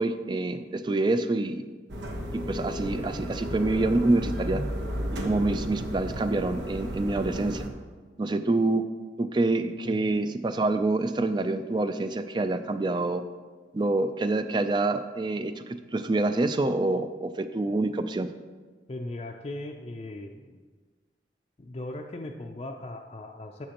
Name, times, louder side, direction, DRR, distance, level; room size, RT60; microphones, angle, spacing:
voice 1, 0.0-1.6 2.3-4.6 5.2-7.7 8.2-8.8 9.2-13.2 13.7-18.3, right 2 dB, 25° right, 10 dB, 0.4 m, -26 dB
sound 1, 1.9-7.7, equal, 85° right, 1.1 m, -33 dB
voice 2, 18.9-20.6 21.6-23.7, left 2 dB, 35° left, 1 dB, 0.4 m, -38 dB
11.5 x 7.5 x 2.9 m, 1.4 s
head